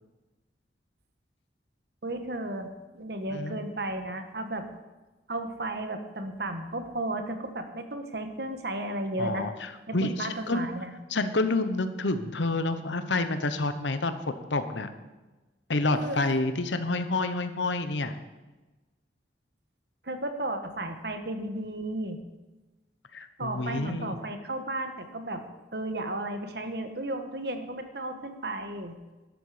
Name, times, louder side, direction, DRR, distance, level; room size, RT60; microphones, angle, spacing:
voice 1, 2.0-4.7 5.3-9.5 9.9-10.9 15.9-16.2 20.0-22.2 23.4-25.4 25.7-28.9, right 1 dB, 60° right, 7 dB, 1.3 m, -34 dB
voice 2, 9.2-9.5 9.9-10.6 11.1-14.9 15.7-18.2 23.1-24.2, left 2 dB, 85° left, 10 dB, 1.0 m, -28 dB
12.5 x 12.0 x 5.0 m, 1.2 s
head